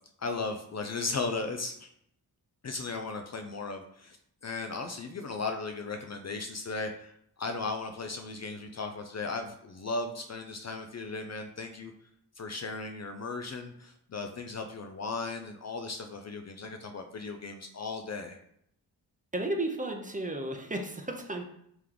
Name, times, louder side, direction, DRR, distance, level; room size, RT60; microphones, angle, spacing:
voice 1, 0.2-1.9 2.6-4.2 4.4-11.9 12.4-18.4, left 3 dB, 40° left, 5 dB, 0.4 m, -36 dB
voice 2, 19.3-21.4, right 1 dB, 20° right, 3 dB, 0.7 m, -33 dB
3.3 x 3.0 x 3.8 m, 0.72 s
cardioid pair, 60°, 41 cm